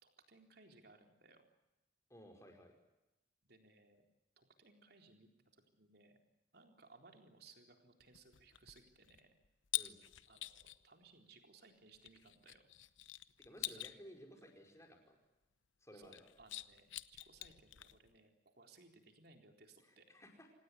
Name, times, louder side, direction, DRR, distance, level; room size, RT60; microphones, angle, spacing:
voice 1, 0.0-1.5 3.4-4.0 4.4-6.2 6.5-9.3 10.3-12.7 13.6-13.9 15.9-20.1, right 3 dB, 55° right, 4 dB, 4.0 m, -63 dB
voice 2, 2.1-2.8 9.8-10.0 13.4-15.2 15.8-16.2 20.1-20.5, equal, 15° left, 3 dB, 5.1 m, -57 dB
sound 1, 8.0-10.9 11.9-14.0 16.0-18.2, left 16 dB, 85° left, 0.9 m, -46 dB
26.5 x 19.0 x 9.7 m, 1.0 s
head